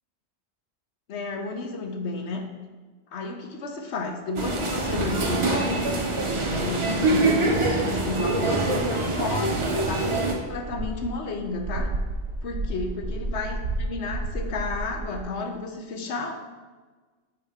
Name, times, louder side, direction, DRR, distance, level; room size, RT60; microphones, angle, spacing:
voice 1, 1.1-2.5 3.1-5.7 6.5-10.1 10.5-12.0 12.4-16.3, left 3 dB, 80° left, 4 dB, 1.1 m, -32 dB
sound 1, 4.4-10.3, right 2 dB, 30° right, 0.7 m, -24 dB
sound 2, 10.3-15.2, right 2 dB, 85° right, 1.0 m, -31 dB
8.7 x 4.1 x 3.5 m, 1.3 s
omnidirectional pair, 1.1 m